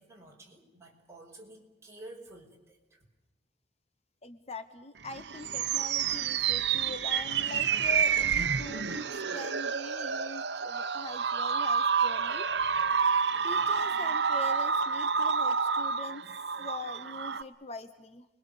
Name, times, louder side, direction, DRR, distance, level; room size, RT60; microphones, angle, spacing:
voice 1, 0.0-3.0, right 2 dB, 15° right, -1 dB, 5.6 m, -51 dB
voice 2, 4.2-9.1 9.3-12.5 13.4-16.2 16.6-18.3, left 3 dB, 35° left, 10 dB, 0.9 m, -42 dB
sound 1, 5.0-17.4, right 6 dB, 75° right, 0.9 m, -29 dB
29.5 x 22.0 x 7.1 m, 1.0 s
head